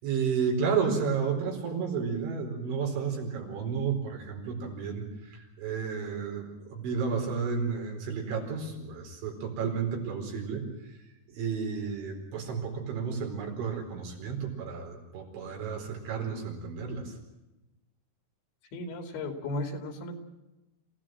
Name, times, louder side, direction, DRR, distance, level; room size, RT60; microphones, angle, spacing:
voice 1, 0.0-11.0 11.3-17.1, right 6 dB, 80° right, 1 dB, 6.9 m, -32 dB
voice 2, 18.7-20.1, left 2 dB, 75° left, 5 dB, 5.2 m, -35 dB
27.5 x 16.5 x 7.7 m, 1.0 s
omnidirectional pair, 5.3 m